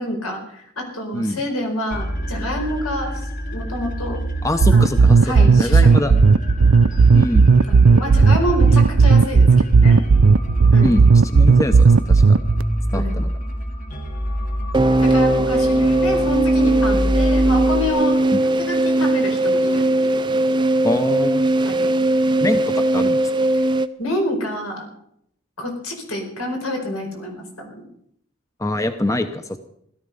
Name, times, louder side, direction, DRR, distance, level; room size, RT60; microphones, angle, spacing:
voice 1, 0.0-4.2 4.7-6.2 7.7-10.1 10.7-11.0 12.9-13.2 15.0-20.2 21.6-22.0 24.0-24.9 25.6-27.9, left 1 dB, 85° left, 3 dB, 4.6 m, -28 dB
sound 1, 1.9-17.9, equal, 35° left, 1.5 m, -27 dB
voice 2, 4.4-5.2 5.6-6.1 7.1-7.5 10.8-11.0 11.3-12.4 12.9-13.3 18.3-18.4 20.8-21.4 22.4-23.2 28.6-29.6, left 1 dB, 15° left, 8 dB, 0.7 m, -23 dB
sound 2, 4.6-12.6, right 4 dB, 70° right, 0.5 m, -12 dB
sound 3, 14.7-23.9, right 1 dB, 20° right, 0.5 m, -19 dB
17.0 x 13.0 x 5.4 m, 0.73 s
head